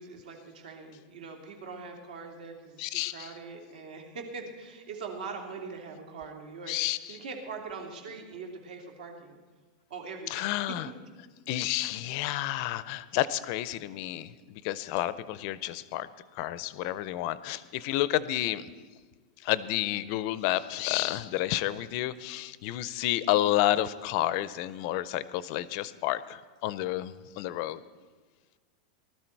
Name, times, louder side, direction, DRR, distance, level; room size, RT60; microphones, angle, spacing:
voice 1, 0.0-6.8 7.1-9.4 9.9-10.8, right 4 dB, 80° right, 1 dB, 2.8 m, -42 dB
voice 2, 2.8-3.3 6.7-7.2 10.3-10.9 11.5-14.3 14.6-16.1 16.4-18.7 19.4-27.8, left 14 dB, 35° left, 16 dB, 0.4 m, -30 dB
19.5 x 13.0 x 4.5 m, 1.4 s
supercardioid pair, 180°, 4 cm